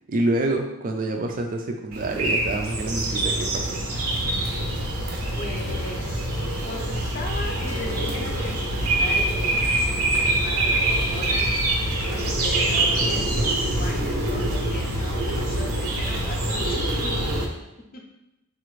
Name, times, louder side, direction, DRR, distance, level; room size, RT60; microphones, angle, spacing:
voice 1, 0.1-3.8, right 2 dB, 40° right, 3 dB, 0.4 m, -27 dB
Birds and rain, 1.9-17.5, right 1 dB, 80° right, 0.7 m, -25 dB
voice 2, 5.3-6.3 6.7-11.7 12.4-17.4 17.9-18.0, left 2 dB, 40° left, 2 dB, 0.5 m, -38 dB
4.8 x 2.5 x 3.1 m, 0.93 s
head